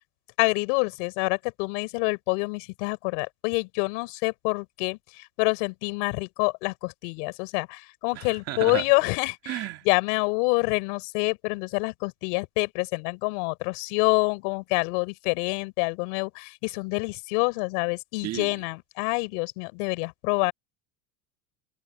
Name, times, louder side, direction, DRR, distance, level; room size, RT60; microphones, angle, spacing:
voice 1, 0.4-20.5, left 33 dB, 65° left, 6.2 m, -27 dB
voice 2, 8.5-8.8 9.5-9.8 18.2-18.5, right 14 dB, 40° right, 2.1 m, -31 dB
supercardioid pair, 150°, 39 cm